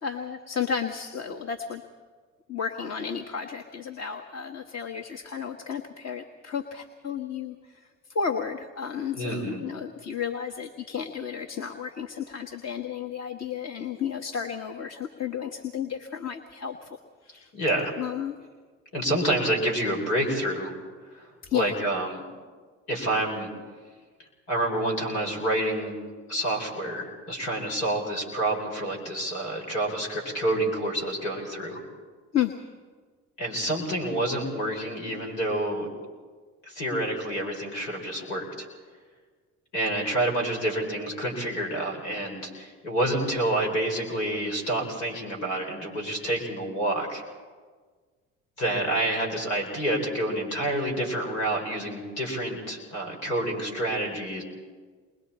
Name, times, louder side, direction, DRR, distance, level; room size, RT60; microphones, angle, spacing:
voice 1, 0.0-1.8 2.5-7.8 8.1-16.9 17.2-17.5 18.0-18.4 21.4-21.7 32.3-32.6, left 7 dB, 40° left, 3 dB, 1.5 m, -32 dB
voice 2, 9.1-9.7 17.5-17.9 18.9-20.7 21.1-22.2 22.9-23.5 24.5-26.0 26.3-31.8 33.4-35.9 36.6-38.7 39.7-47.2 48.6-54.4, right 1 dB, 85° left, 1 dB, 5.3 m, -28 dB
28.5 x 21.5 x 4.3 m, 1.5 s
hypercardioid pair, 60°, 38 cm